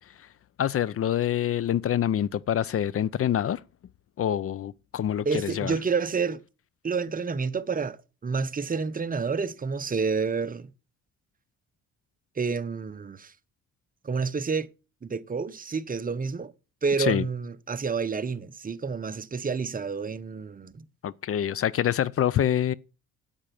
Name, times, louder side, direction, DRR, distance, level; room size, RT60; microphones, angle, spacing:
voice 1, 0.6-3.6 4.2-5.7 17.0-17.2 21.0-22.7, left 10 dB, 50° left, 0.5 m, -26 dB
voice 2, 5.2-6.4 6.8-10.7 12.4-13.3 14.0-14.7 15.0-16.5 16.8-20.8, right 5 dB, 30° right, 0.9 m, -29 dB
9.0 x 8.8 x 6.8 m
cardioid pair, 90°, 30 cm